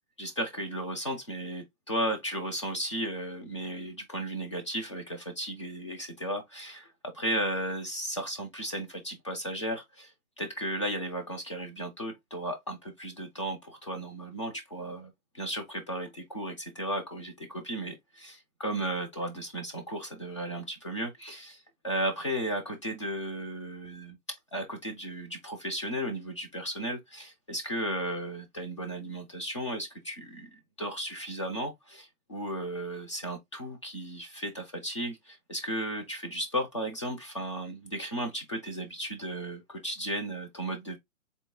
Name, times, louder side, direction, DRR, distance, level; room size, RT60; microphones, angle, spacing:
voice 1, 0.2-41.0, right 1 dB, 20° left, 0.4 m, -35 dB
3.9 x 2.1 x 3.5 m
hypercardioid pair, 150°, 44 cm